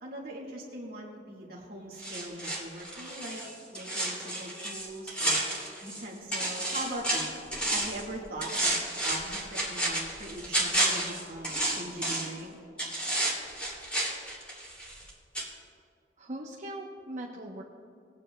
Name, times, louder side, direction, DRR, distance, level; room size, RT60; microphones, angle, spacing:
voice 1, 0.0-3.5 3.7-5.5 5.8-7.3 7.7-8.8 9.0-12.6, right 1 dB, 60° right, -4 dB, 1.6 m, -41 dB
sound 1, 2.0-6.0 6.3-8.0 8.4-12.4 12.8-15.1 15.3-15.5, right 1 dB, 5° left, 2.4 m, -31 dB
voice 2, 16.2-17.6, right 1 dB, 45° right, -1 dB, 0.8 m, -40 dB
19.5 x 9.2 x 2.2 m, 2.3 s
head